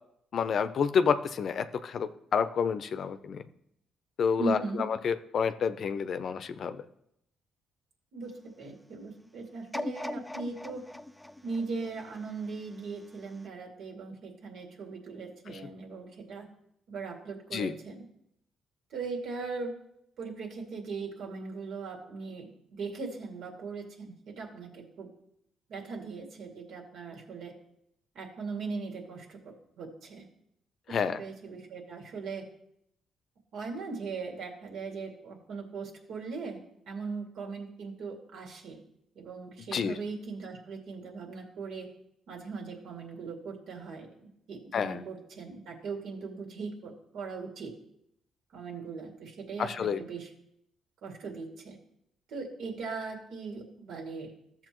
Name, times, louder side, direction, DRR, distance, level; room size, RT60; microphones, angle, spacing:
voice 1, 0.3-3.4 4.2-6.8 15.5-15.6 17.5-17.8 30.9-31.2 39.7-40.0 44.7-45.0 49.6-50.0, left 6 dB, 60° left, 12 dB, 0.6 m, -29 dB
voice 2, 4.4-4.8 8.1-10.8 11.4-16.5 16.9-18.0 18.9-19.7 20.2-25.1 25.7-27.5 28.1-30.2 30.9-32.4 33.5-38.8 39.1-41.9 42.3-47.7 48.5-50.3 51.0-51.8 52.3-54.3, right 4 dB, 75° right, 0 dB, 2.3 m, -39 dB
sound 1, 9.7-12.8 13.3-13.4, left 1 dB, 10° left, 0.5 m, -39 dB
13.5 x 7.0 x 3.0 m, 0.76 s
cardioid pair, 80°, 0 cm